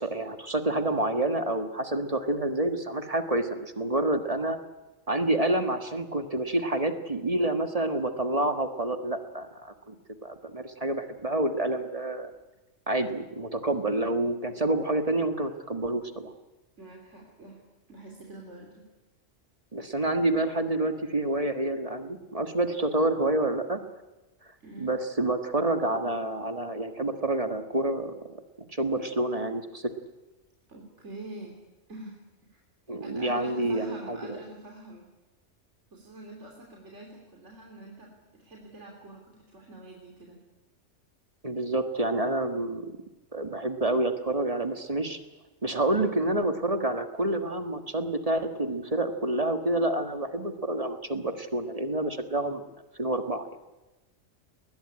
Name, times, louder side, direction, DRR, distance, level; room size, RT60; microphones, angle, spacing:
voice 1, 0.0-4.6 5.1-10.0 10.2-12.3 12.9-16.3 19.7-23.8 24.8-28.2 28.7-29.9 32.9-34.2 41.4-43.0 43.3-45.2 45.6-52.6 53.0-53.5, right 1 dB, 30° right, 7 dB, 1.6 m, -28 dB
voice 2, 16.8-17.6 17.9-18.9 24.6-25.0 30.7-31.6 31.9-32.2 32.5-32.6 33.0-35.1 35.9-40.4, right 2 dB, 70° right, 0 dB, 3.6 m, -45 dB
20.5 x 20.0 x 9.9 m, 1.1 s
omnidirectional pair, 1.3 m